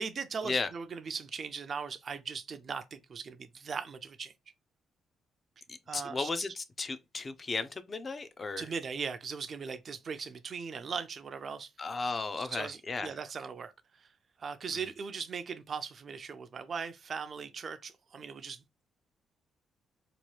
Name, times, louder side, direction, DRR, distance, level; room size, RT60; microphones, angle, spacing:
voice 1, 0.0-4.3 5.9-6.3 8.6-11.7 12.5-13.7 14.0-14.1 14.4-18.6, right 5 dB, 45° right, 0.4 m, -39 dB
voice 2, 5.7-8.7 11.8-13.1, left 4 dB, 35° left, 0.4 m, -35 dB
2.9 x 2.2 x 3.1 m
cardioid pair, 90°, 0 cm